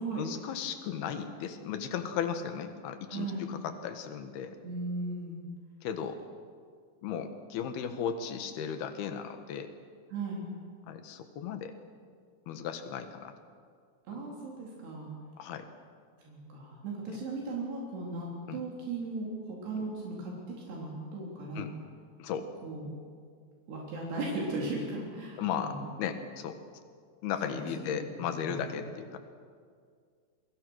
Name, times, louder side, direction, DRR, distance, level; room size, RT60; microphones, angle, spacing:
voice 1, 0.1-4.6 5.8-6.2 7.0-9.7 10.9-11.7 12.5-13.3 15.4-15.7 18.5-18.6 21.5-21.7 22.2-22.5 25.4-26.6 27.2-29.2, left 8 dB, 70° left, 7 dB, 3.4 m, -36 dB
voice 2, 3.1-3.4 4.6-5.4 10.1-10.4 14.1-15.2 16.2-20.3 20.7-21.6 22.6-22.9 23.7-26.0 27.4-27.5 28.2-28.8, right 3 dB, 80° right, -3 dB, 5.7 m, -37 dB
29.0 x 23.0 x 6.4 m, 2.1 s
omnidirectional pair, 4.7 m